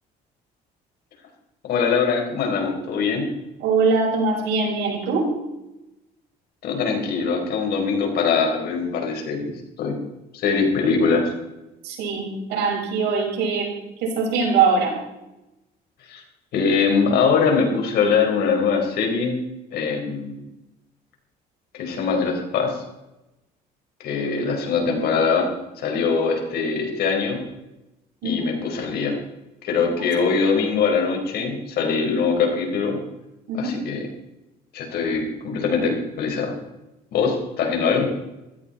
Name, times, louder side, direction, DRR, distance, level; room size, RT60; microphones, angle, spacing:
voice 1, 1.6-3.2 6.6-9.5 9.8-10.0 10.3-11.3 16.1-16.2 16.5-19.4 19.7-20.4 21.7-22.8 24.0-25.5 25.8-27.4 28.2-29.2 29.6-33.0 33.5-34.1 34.7-36.6 37.1-38.1, left 5 dB, 70° left, 2 dB, 4.7 m, -22 dB
voice 2, 3.6-5.3 11.8-13.7 14.0-15.0 28.2-28.5 33.5-33.8, right 4 dB, 85° right, -1 dB, 5.9 m, -22 dB
16.0 x 14.5 x 4.4 m, 0.95 s
cardioid pair, 110°, 17 cm